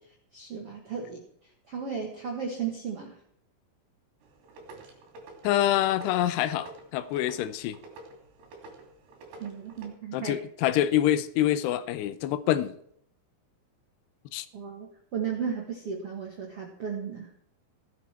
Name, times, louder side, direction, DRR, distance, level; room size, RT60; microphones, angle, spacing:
voice 1, 0.3-1.2 1.7-3.2 9.4-10.3 14.5-17.3, right 6 dB, 90° right, 0 dB, 1.3 m, -35 dB
sound 1, 4.2-9.9, right 2 dB, 60° right, 4.7 m, -49 dB
voice 2, 5.4-7.8 10.1-12.8 14.3-14.5, left 12 dB, 80° left, 13 dB, 2.5 m, -26 dB
17.0 x 11.5 x 4.5 m, 0.67 s
omnidirectional pair, 5.7 m